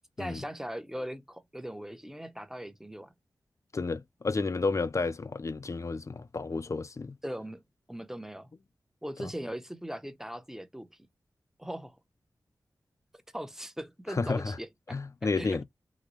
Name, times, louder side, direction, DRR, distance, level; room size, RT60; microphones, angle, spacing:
voice 1, 0.2-3.1 7.2-7.6 7.9-8.5 9.0-11.0 11.6-12.0 13.3-15.6, equal, 5° right, 0.7 m, -39 dB
voice 2, 3.7-7.1 14.1-14.6 14.9-15.6, left 4 dB, 45° left, 0.5 m, -31 dB
3.9 x 2.1 x 3.0 m
cardioid pair, 50°, 7 cm